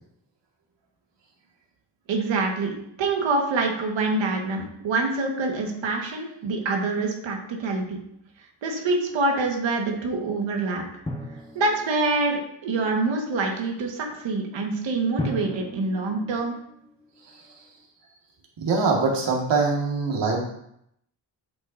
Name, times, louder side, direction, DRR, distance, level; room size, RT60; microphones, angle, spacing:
voice 1, 2.1-8.0 8.6-10.8 11.5-16.5, right 3 dB, 90° right, 1 dB, 1.7 m, -26 dB
Drum, 11.1-12.6 15.2-17.3, left 1 dB, 10° left, 1.6 m, -36 dB
voice 2, 18.6-20.4, right 4 dB, 70° right, -1 dB, 2.0 m, -23 dB
8.2 x 7.9 x 2.7 m, 0.74 s
cardioid pair, 60°, 44 cm